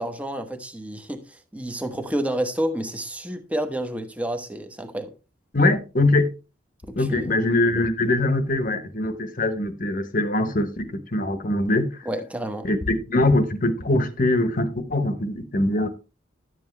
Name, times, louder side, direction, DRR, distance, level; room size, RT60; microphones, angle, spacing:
voice 1, 0.0-5.1 6.8-7.3 12.0-12.7, right 1 dB, 5° right, 0.9 m, -30 dB
voice 2, 5.5-6.3 6.9-12.1 12.6-15.9, left 2 dB, 45° left, 1.0 m, -22 dB
11.5 x 7.6 x 3.2 m
head